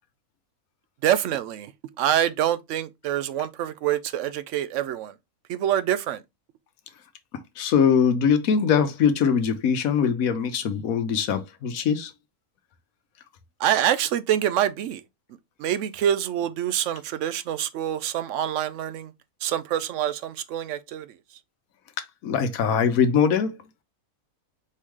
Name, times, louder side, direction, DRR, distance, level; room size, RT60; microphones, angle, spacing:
voice 1, 1.0-1.7 2.0-5.1 5.5-6.2 13.6-15.0 15.6-19.1 19.4-21.1, right 11 dB, 65° right, 0.8 m, -26 dB
voice 2, 7.6-12.1 22.2-23.5, left 7 dB, 70° left, 1.1 m, -22 dB
4.5 x 3.1 x 3.5 m
omnidirectional pair, 1.6 m